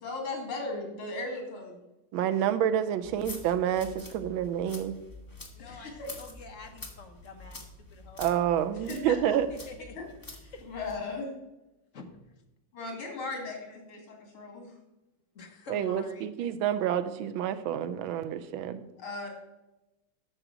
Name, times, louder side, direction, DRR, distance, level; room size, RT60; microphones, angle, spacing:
voice 1, 0.0-1.8 5.6-6.1 8.9-9.4 10.0-10.1 10.7-11.3 12.7-14.7 19.0-19.3, left 3 dB, 85° left, 2 dB, 3.2 m, -37 dB
voice 2, 2.1-4.9 8.2-9.5 15.7-18.8, right 10 dB, 80° right, 11 dB, 1.4 m, -28 dB
sound 1, 3.0-11.0, left 2 dB, 15° left, 0.9 m, -47 dB
voice 3, 5.5-8.2 9.5-10.0 10.5-10.7 11.9-12.2 15.3-16.3, left 3 dB, 45° left, 4 dB, 1.1 m, -47 dB
9.0 x 6.4 x 6.1 m, 1.0 s
omnidirectional pair, 2.3 m